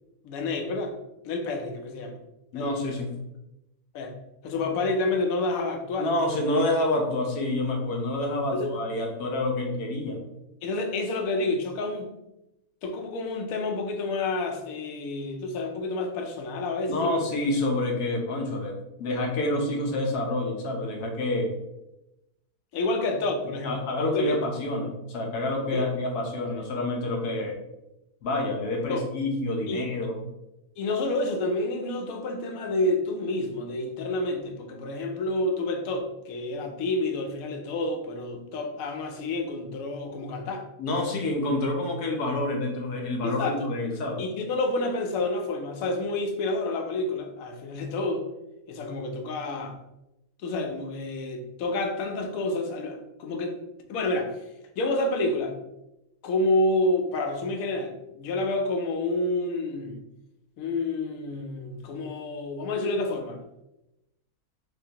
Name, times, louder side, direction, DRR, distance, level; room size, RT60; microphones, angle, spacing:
voice 1, 0.2-1.0 1.2-2.2 2.5-2.8 3.9-4.2 4.4-6.1 8.5-8.7 10.6-12.2 12.8-17.1 22.7-23.8 24.1-24.4 25.7-25.9 28.9-29.1 29.7-29.8 30.8-40.6 43.2-43.6 44.2-48.2 48.7-49.8 50.4-53.6 53.9-54.4 54.8-55.6 56.2-60.0 60.6-63.4, left 2 dB, 70° left, 1.0 m, -29 dB
voice 2, 2.5-3.1 6.0-10.2 16.9-21.5 23.6-27.6 28.2-30.2 40.8-44.2, left 2 dB, 90° left, 1.3 m, -28 dB
3.8 x 3.0 x 2.8 m
omnidirectional pair, 1.6 m